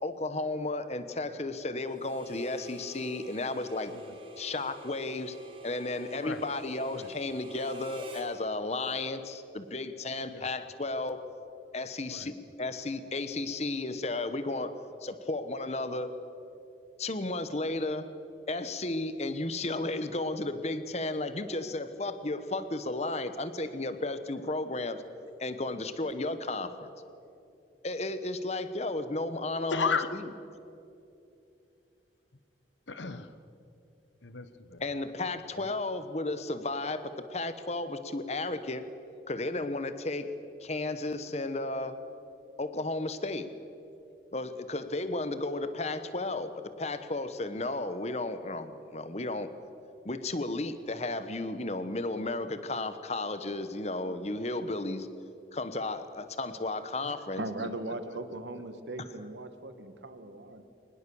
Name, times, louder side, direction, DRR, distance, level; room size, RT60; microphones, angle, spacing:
voice 1, 0.0-3.9 4.4-5.3 5.6-11.2 11.7-14.7 15.0-16.1 17.0-18.1 18.5-25.0 25.4-26.9 27.8-30.3 34.8-38.9 39.3-40.3 40.6-42.0 42.6-43.5 44.3-49.5 50.0-55.1 55.5-57.4, left 2 dB, 35° left, 1.1 m, -33 dB
Harmonica, 2.0-8.3, equal, 30° right, 2.5 m, -47 dB
voice 2, 29.7-30.1 32.9-33.3 34.2-34.8 57.6-57.9, left 5 dB, 90° left, 1.1 m, -34 dB
voice 3, 57.4-60.6, right 2 dB, 80° right, 1.5 m, -39 dB
23.0 x 20.0 x 7.1 m
head